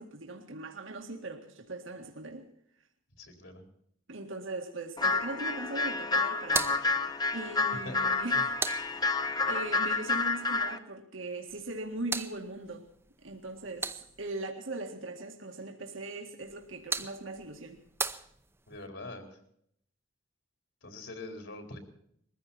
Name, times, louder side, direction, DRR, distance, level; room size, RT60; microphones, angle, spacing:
voice 1, 0.0-2.5 4.1-6.8 7.3-9.1 9.5-12.9 13.2-17.8, right 2 dB, 80° right, 2.0 m, -40 dB
voice 2, 3.2-3.6 7.8-8.1 8.3-8.5 18.7-19.3 20.8-21.8, left 2 dB, 70° left, 4.3 m, -43 dB
sound 1, 5.0-10.8, left 3 dB, 20° left, 0.9 m, -29 dB
sound 2, 6.4-9.5 11.5-14.4 16.4-18.9, right 4 dB, 10° right, 0.7 m, -39 dB
22.0 x 15.0 x 4.3 m
head